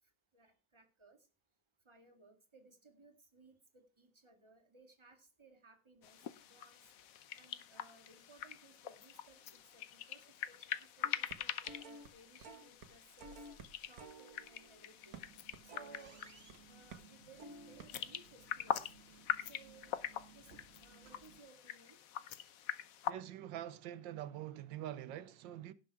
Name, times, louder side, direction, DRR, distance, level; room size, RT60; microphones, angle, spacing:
voice 1, 0.3-1.2 1.9-6.8 7.4-13.4 13.8-15.2 15.7-16.2 16.7-18.8 19.4-19.9 20.3-20.5 20.8-22.0, right 3 dB, 15° right, 2.2 m, -62 dB
sound 1, 6.0-23.1, left 10 dB, 60° left, 1.0 m, -44 dB
sound 2, 11.0-12.1 12.4-12.9 13.2-16.5 16.9-17.1 17.4-17.9, right 3 dB, 55° right, 1.7 m, -53 dB
sound 3, 14.9-21.4, right 5 dB, 35° right, 1.8 m, -62 dB
voice 2, 23.1-25.7, right 12 dB, 85° right, 1.4 m, -45 dB
17.5 x 6.0 x 4.7 m
omnidirectional pair, 2.0 m